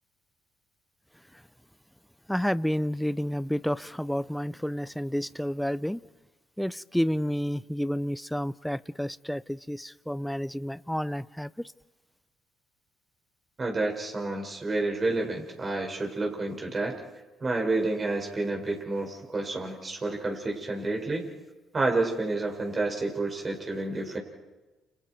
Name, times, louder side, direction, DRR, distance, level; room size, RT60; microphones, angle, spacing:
voice 1, 2.3-6.0 6.6-11.5, equal, 5° left, 0.7 m, -30 dB
voice 2, 13.6-17.0 17.4-21.2 21.7-24.2, right 2 dB, 35° right, 6.1 m, -29 dB
30.0 x 30.0 x 4.7 m
hypercardioid pair, 55°, 0 cm